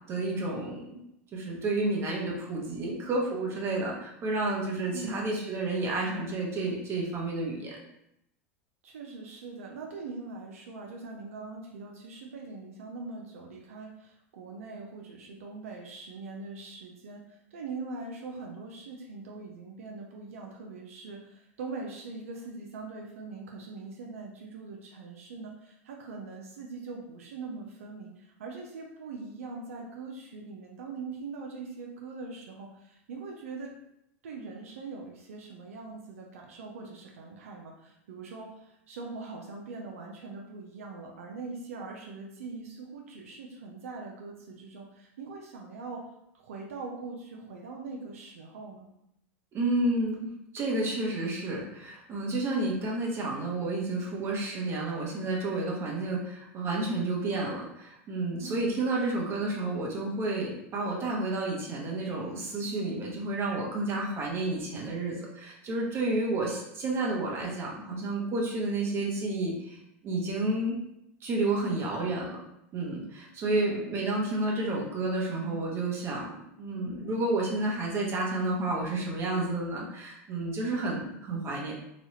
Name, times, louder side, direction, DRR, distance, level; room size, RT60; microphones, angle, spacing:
voice 1, 0.1-1.0 1.3-7.8 49.5-69.8 70.0-70.8 71.2-72.4 72.7-81.7, right 2 dB, 35° right, -2 dB, 0.9 m, -30 dB
voice 2, 4.9-5.3 8.8-33.7 34.2-48.9 58.4-58.6 73.4-73.8, right 4 dB, 90° right, 0 dB, 0.5 m, -42 dB
3.0 x 2.3 x 3.1 m, 0.82 s
hypercardioid pair, 110°, 7 cm